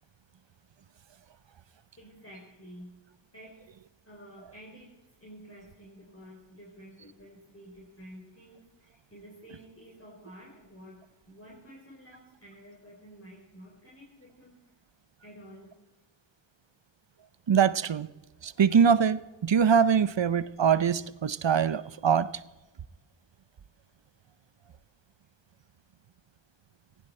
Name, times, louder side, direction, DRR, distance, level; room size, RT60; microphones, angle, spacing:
voice 1, 2.0-3.0 3.3-3.6 4.0-4.9 5.2-14.5 15.2-15.7, equal, 30° left, 4.1 m, -50 dB
voice 2, 17.5-18.1 18.4-22.3, right 7 dB, 65° right, 0.7 m, -23 dB
17.5 x 16.0 x 4.4 m
wide cardioid pair, 50°, 47 cm